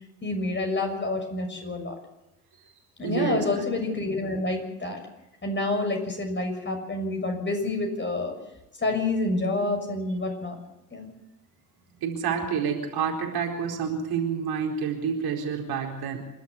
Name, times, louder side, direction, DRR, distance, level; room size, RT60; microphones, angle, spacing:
voice 1, 0.2-1.9 3.0-5.0 5.4-8.3 8.8-10.6 10.9-11.1, left 2 dB, 25° left, 3 dB, 6.5 m, -28 dB
voice 2, 3.0-3.4 12.0-16.2, right 6 dB, 50° right, 1 dB, 4.5 m, -28 dB
28.0 x 12.0 x 8.4 m, 0.92 s
figure-of-eight pair, 60°, 47 cm